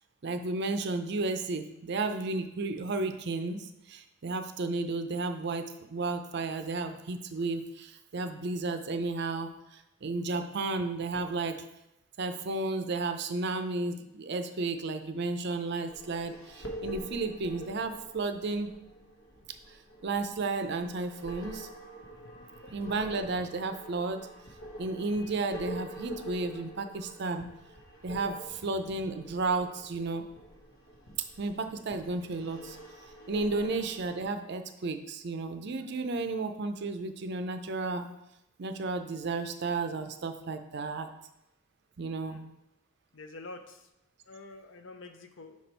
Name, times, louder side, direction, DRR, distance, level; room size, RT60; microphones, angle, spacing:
voice 1, 0.2-11.7 12.2-18.7 19.7-21.7 22.7-24.3 24.8-27.5 28.0-30.2 31.4-32.8 33.3-38.1 38.6-41.1 42.0-42.4, right 3 dB, 55° right, 8 dB, 0.5 m, -33 dB
sound 1, 15.9-34.2, right 1 dB, 80° left, 1.2 m, -46 dB
Telephone, 21.5-24.4 25.0-25.3 25.7-26.0, equal, 25° left, 0.8 m, -58 dB
voice 2, 22.4-22.7 33.6-33.8 42.1-42.5 43.1-43.9 44.3-45.6, left 2 dB, 60° left, 7 dB, 0.6 m, -48 dB
5.8 x 4.2 x 4.4 m, 0.86 s
head